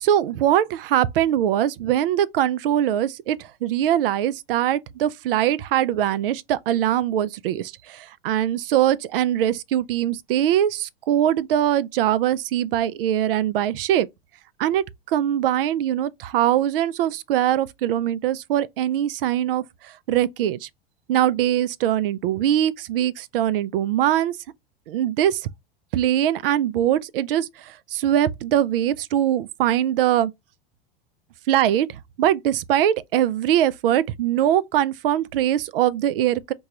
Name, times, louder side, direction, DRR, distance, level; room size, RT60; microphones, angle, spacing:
voice 1, 0.0-14.1 14.6-19.6 20.1-20.7 21.1-24.4 24.9-25.4 25.9-30.3 31.5-31.9 32.2-36.5, right 11 dB, 65° right, 0.5 m, -22 dB
4.6 x 2.3 x 2.9 m
hypercardioid pair, 95°, 30 cm